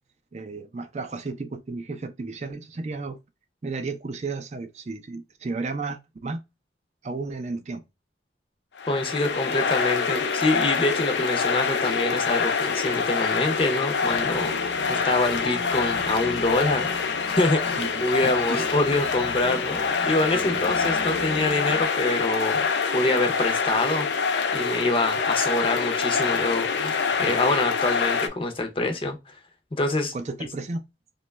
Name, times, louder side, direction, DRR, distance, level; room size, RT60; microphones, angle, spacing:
voice 1, 0.3-3.2 3.6-6.4 7.0-7.8 17.8-18.6 20.3-20.7 27.2-27.4 30.1-30.8, right 3 dB, 40° right, 0.4 m, -33 dB
sound 1, 8.8-28.3, left 5 dB, 75° left, 0.5 m, -26 dB
voice 2, 8.9-24.1 24.5-29.4 29.7-30.1, left 2 dB, 30° left, 0.5 m, -26 dB
sound 2, 14.0-21.8, equal, 75° right, 0.8 m, -41 dB
3.0 x 2.3 x 3.1 m
head